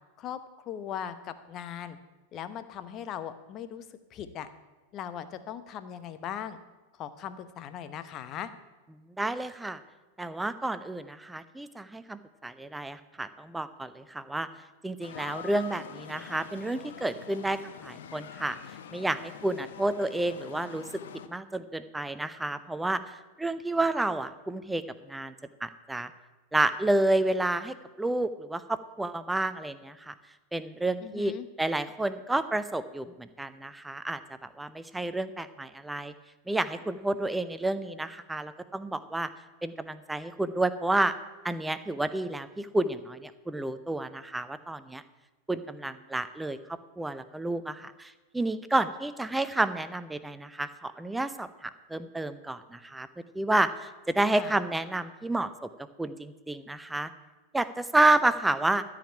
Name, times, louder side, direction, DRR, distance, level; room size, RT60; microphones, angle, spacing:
voice 1, 0.7-2.0 2.3-3.8 4.1-4.5 4.9-6.6 6.9-8.5 31.0-31.5 54.3-54.6, left 9 dB, 35° left, 11 dB, 0.8 m, -39 dB
voice 2, 9.2-9.8 10.2-14.5 14.8-18.6 18.9-20.8 21.3-23.0 23.4-25.3 25.6-26.1 26.5-30.1 30.5-31.3 31.6-36.1 36.5-39.3 39.6-41.1 41.4-45.0 45.5-46.6 47.0-53.1 53.3-55.7 56.0-57.1 57.5-58.8, right 2 dB, 5° right, 13 dB, 0.6 m, -30 dB
sound 1, 15.0-21.3, left 8 dB, 60° left, 0.7 m, -45 dB
13.0 x 5.1 x 8.8 m, 1.2 s
figure-of-eight pair, 90°, 0 cm